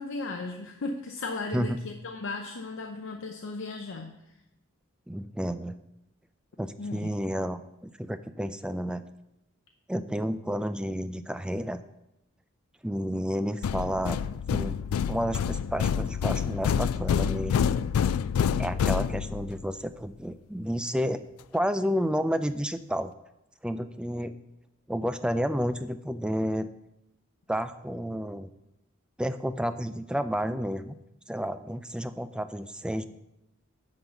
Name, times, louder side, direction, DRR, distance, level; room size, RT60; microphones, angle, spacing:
voice 1, 0.0-4.2 6.8-7.1, left 3 dB, 60° left, 4 dB, 0.7 m, -36 dB
voice 2, 5.1-5.8 6.6-9.0 9.9-11.8 12.8-14.2 14.5-14.8 15.1-17.8 18.6-21.2 21.5-23.1 23.6-24.4 24.9-26.7 27.5-28.5 29.2-31.0 31.3-33.0, equal, 5° right, 11 dB, 0.3 m, -31 dB
sound 1, 13.6-19.6, left 7 dB, 90° left, 0.3 m, -27 dB
10.5 x 4.0 x 6.8 m, 0.89 s
head